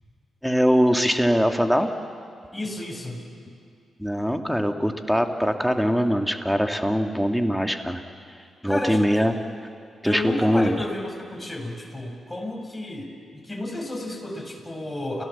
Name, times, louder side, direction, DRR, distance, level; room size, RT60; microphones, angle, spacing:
voice 1, 0.4-1.9 4.0-8.0 8.6-9.3 10.0-10.7, equal, ahead, 5 dB, 2.3 m, -22 dB
voice 2, 2.5-3.2 8.7-9.3 10.0-13.1 13.4-15.2, left 1 dB, 15° left, 1 dB, 6.5 m, -32 dB
29.5 x 16.5 x 7.2 m, 2.3 s
hypercardioid pair, 40°, 0 cm